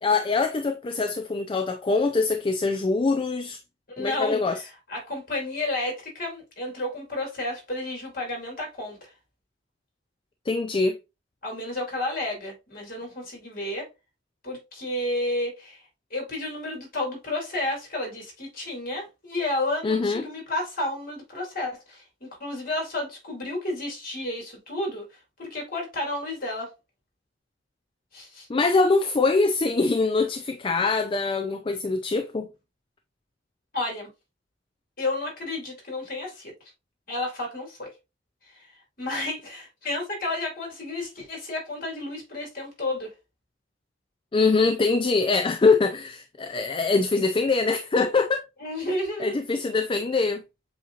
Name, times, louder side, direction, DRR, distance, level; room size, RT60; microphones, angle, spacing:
voice 1, 0.0-3.6 4.0-4.6 10.5-11.0 19.8-20.2 28.5-32.5 44.3-48.4 49.2-50.4, left 3 dB, 25° left, 0.4 m, -23 dB
voice 2, 3.9-9.1 11.4-13.9 14.4-15.8 16.1-25.1 25.4-26.7 28.1-28.5 33.7-34.1 35.0-36.5 37.1-37.9 38.5-38.7 39.0-43.1 48.6-49.4, left 2 dB, 50° left, 2.6 m, -31 dB
7.7 x 2.8 x 2.5 m
head